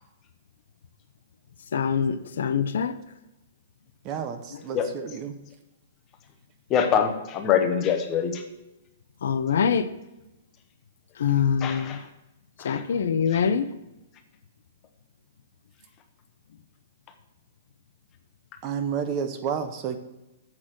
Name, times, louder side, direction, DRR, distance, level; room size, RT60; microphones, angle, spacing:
voice 1, 1.7-2.9 9.2-9.9 11.2-12.0 12.6-13.7, left 7 dB, 65° left, 11 dB, 0.7 m, -24 dB
voice 2, 4.0-5.4 18.6-20.0, right 7 dB, 20° right, 8 dB, 0.6 m, -30 dB
voice 3, 6.7-8.4 11.6-12.0 12.6-12.8 13.3-13.4, left 8 dB, 20° left, 6 dB, 0.8 m, -24 dB
7.5 x 6.4 x 6.4 m, 0.96 s
hypercardioid pair, 180°, 0 cm